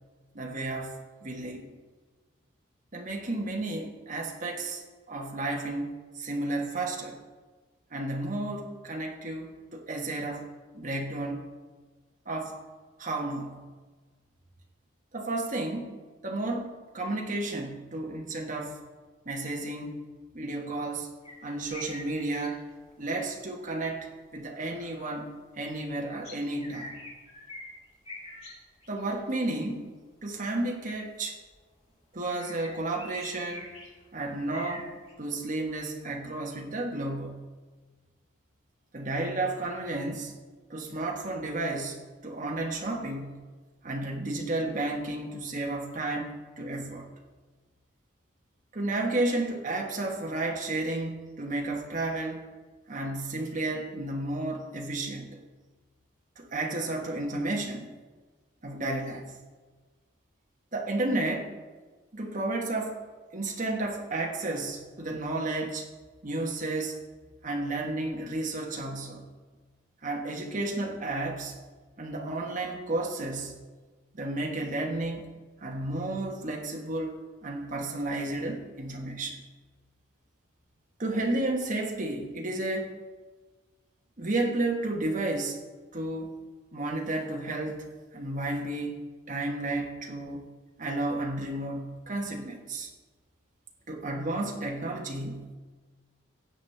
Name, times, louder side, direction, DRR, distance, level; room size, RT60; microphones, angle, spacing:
voice 1, 0.3-1.7 2.9-4.8 5.1-7.2 7.9-10.5 10.7-11.4 12.2-12.6 13.0-13.6 15.1-18.8 19.2-20.0 20.3-21.1 21.4-22.6 23.0-27.0 28.9-29.9 30.2-31.4 32.1-33.7 34.1-37.4 38.9-40.3 40.7-43.4 43.8-47.1 48.7-52.4 52.9-55.4 56.4-57.9 58.6-59.3 60.7-61.6 62.1-63.0 63.3-65.9 66.2-67.0 67.4-69.2 70.0-71.6 72.0-73.5 74.1-79.4 81.0-83.0 84.2-85.6 85.9-86.4 86.7-87.8 88.1-90.5 90.8-92.9 93.9-95.6, right 2 dB, 40° right, 0 dB, 1.3 m, -32 dB
sound 1, 21.2-22.8 24.5-25.2 26.2-27.7 28.0-28.6 28.8-29.2 29.9-30.0 31.4-31.7 32.3-34.1 34.5-35.1, left 1 dB, 30° left, 2.7 m, -45 dB
17.0 x 7.3 x 3.4 m, 1.3 s
head